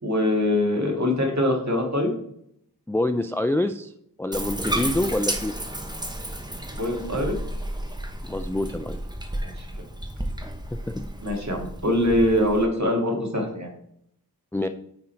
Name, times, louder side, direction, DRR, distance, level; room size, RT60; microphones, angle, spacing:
voice 1, 0.0-2.1 6.8-7.4 9.4-9.7 11.2-13.7, left 1 dB, 45° right, 1 dB, 2.1 m, -23 dB
voice 2, 2.9-3.9 4.2-5.5 8.3-9.0 10.7-11.1 14.5-14.7, left 1 dB, 5° left, 9 dB, 0.3 m, -26 dB
Bathtub (filling or washing), 4.3-12.7, right 1 dB, 10° right, 1.0 m, -32 dB
9.4 x 3.8 x 4.4 m, 0.70 s
wide cardioid pair, 55°, 39 cm